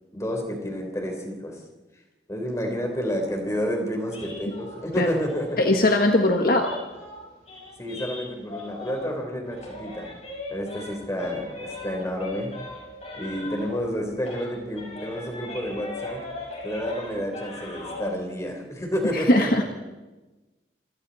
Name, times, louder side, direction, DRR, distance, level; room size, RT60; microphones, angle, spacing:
voice 1, 0.1-1.6 2.3-5.8 7.8-10.1 10.5-12.5 13.2-16.2 16.6-19.5, equal, 15° left, 3 dB, 4.0 m, -30 dB
sound 1, 4.1-9.2 9.5-14.0 14.2-18.1, left 2 dB, 40° left, 7.2 m, -39 dB
voice 2, 5.6-6.7 19.1-19.6, left 1 dB, 55° left, 3 dB, 1.6 m, -20 dB
26.5 x 26.5 x 4.3 m, 1.2 s
head